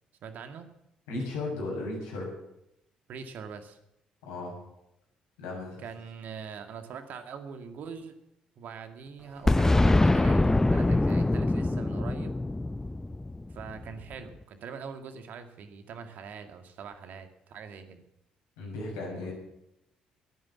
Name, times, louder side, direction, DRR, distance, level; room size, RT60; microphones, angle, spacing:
voice 1, 0.2-0.7 3.1-3.8 5.8-8.1 8.6-12.3 13.5-18.0, right 6 dB, 55° right, 7 dB, 2.0 m, -42 dB
voice 2, 1.1-2.3 4.2-4.6 5.4-5.8 18.6-19.3, left 2 dB, 75° left, -1 dB, 7.0 m, -35 dB
Boom, 9.5-14.1, left 2 dB, 15° left, 0.7 m, -24 dB
21.5 x 9.4 x 7.2 m, 0.84 s
figure-of-eight pair, 45°, 3 cm